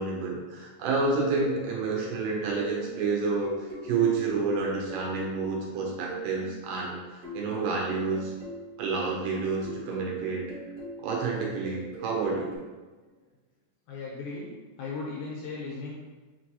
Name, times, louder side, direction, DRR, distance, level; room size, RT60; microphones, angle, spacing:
voice 1, 0.0-8.3 8.8-10.5 11.0-12.5, right 4 dB, 80° right, -2 dB, 2.2 m, -29 dB
sound 1, 0.9-6.5 7.2-9.3 9.6-12.6, right 3 dB, 55° right, 1.8 m, -41 dB
voice 2, 13.9-15.9, left 3 dB, 80° left, -4 dB, 1.9 m, -37 dB
5.2 x 3.1 x 2.7 m, 1.3 s
omnidirectional pair, 4.1 m